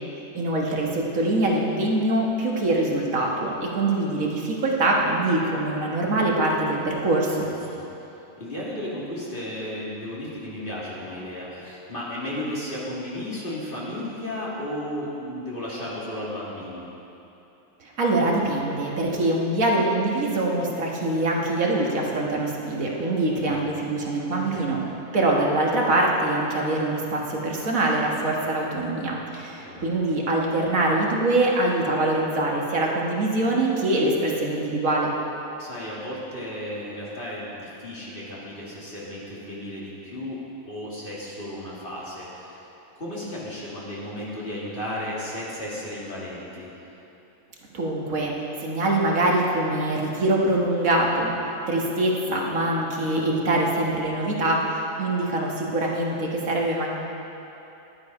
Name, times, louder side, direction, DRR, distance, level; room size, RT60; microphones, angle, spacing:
voice 1, 0.3-7.5 17.8-24.8 25.1-35.1 47.7-48.3 48.6-51.3 51.7-56.9, right 2 dB, 75° right, -2 dB, 2.0 m, -24 dB
voice 2, 8.4-16.9 23.5-23.7 24.5-24.6 29.6-29.9 35.6-42.6 43.0-46.7, left 1 dB, 40° left, -7 dB, 2.4 m, -34 dB
11.5 x 10.5 x 5.4 m, 3.0 s
omnidirectional pair, 1.4 m